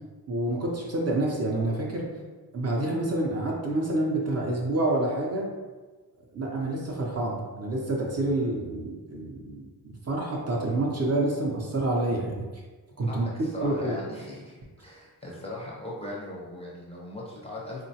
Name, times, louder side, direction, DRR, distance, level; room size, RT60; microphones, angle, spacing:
voice 1, 0.3-2.1 2.5-5.5 6.3-12.5 13.0-13.3 13.6-14.0, right 2 dB, 40° right, -2 dB, 0.5 m, -28 dB
voice 2, 13.1-17.8, left 1 dB, 15° left, -5 dB, 0.4 m, -39 dB
3.7 x 2.1 x 2.7 m, 1.3 s
wide cardioid pair, 175°, 40 cm